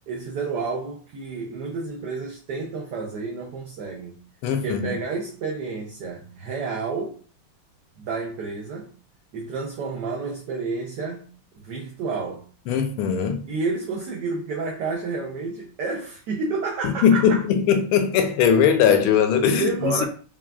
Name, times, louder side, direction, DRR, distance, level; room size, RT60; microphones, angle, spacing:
voice 1, 0.1-4.2 4.6-7.2 8.0-8.9 9.3-11.3 11.6-12.5 13.5-17.4 19.5-20.1, right 4 dB, 70° right, 1.0 m, -30 dB
voice 2, 4.4-5.0 12.7-13.4 16.8-20.1, left 7 dB, 85° left, 1.5 m, -20 dB
5.6 x 2.3 x 2.3 m
omnidirectional pair, 2.4 m